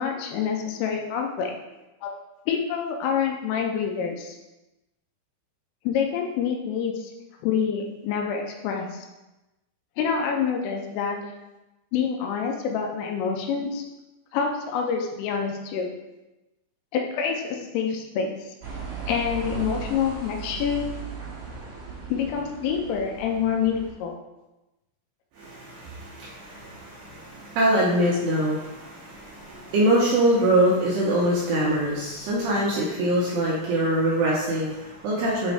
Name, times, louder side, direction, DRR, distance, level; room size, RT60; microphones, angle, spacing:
voice 1, 0.0-1.5 2.0-2.1 2.5-4.4 5.9-7.1 7.4-9.1 10.0-11.2 11.9-13.8 14.3-15.9 16.9-18.4 19.1-20.9 22.1-24.1, left 7 dB, 80° left, 2 dB, 3.3 m, -27 dB
sound 1, 18.6-23.9, right 5 dB, 50° right, 2.2 m, -37 dB
voice 2, 25.4-35.5, right 1 dB, 80° right, -6 dB, 2.5 m, -24 dB
7.8 x 3.1 x 4.8 m, 1.0 s
omnidirectional pair, 5.9 m